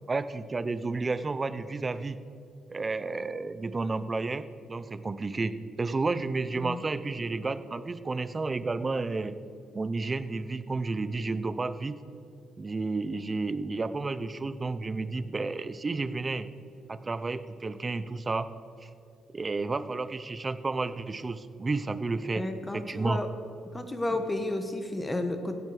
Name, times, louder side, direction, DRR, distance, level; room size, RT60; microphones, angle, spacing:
voice 1, 0.1-2.2 2.7-9.4 9.7-12.0 12.6-16.5 16.9-18.5 18.8-18.9 19.3-22.4 22.7-23.2 24.1-24.2, right 3 dB, 30° right, 13 dB, 0.6 m, -31 dB
voice 2, 22.3-23.3 23.7-25.5, left 2 dB, 15° left, 7 dB, 1.1 m, -32 dB
15.5 x 9.4 x 4.9 m, 2.5 s
cardioid pair, 90°, 0 cm